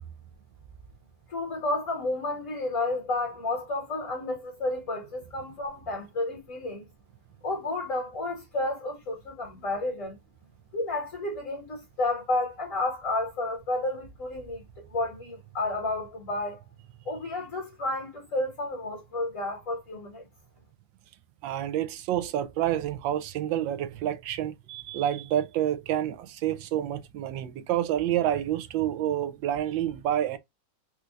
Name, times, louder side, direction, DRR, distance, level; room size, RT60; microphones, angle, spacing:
voice 1, 1.3-6.9 7.4-10.2 10.7-16.6 17.0-20.2, left 2 dB, 45° left, 1.6 m, -31 dB
voice 2, 21.4-30.4, right 11 dB, 85° right, 1.3 m, -28 dB
4.4 x 2.5 x 2.3 m
omnidirectional pair, 2.0 m